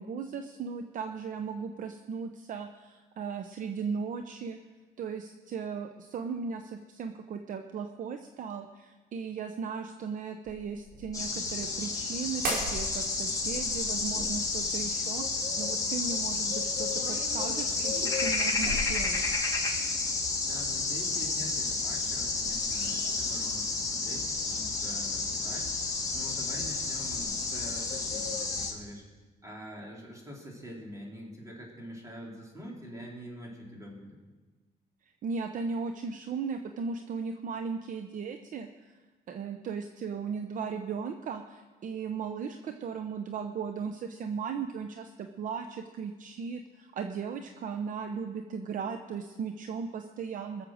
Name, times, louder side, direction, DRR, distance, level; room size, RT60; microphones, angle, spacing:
voice 1, 0.0-4.6 5.0-15.3 15.6-19.2 35.2-38.9 39.3-50.6, right 6 dB, 50° right, 7 dB, 0.8 m, -37 dB
sound 1, 10.5-11.8 12.4-13.0 13.3-15.0 16.8-19.7 20.9-21.4 21.8-22.9 24.1-26.0 26.3-27.9, right 1 dB, 75° right, 4.8 m, -41 dB
sound 2, 11.1-28.7, left 3 dB, 20° left, 2.5 m, -31 dB
voice 2, 20.4-25.7 26.1-29.0 29.4-34.2, equal, 20° right, -2 dB, 4.0 m, -45 dB
21.0 x 7.5 x 6.4 m, 1.3 s
cardioid pair, 110°, 17 cm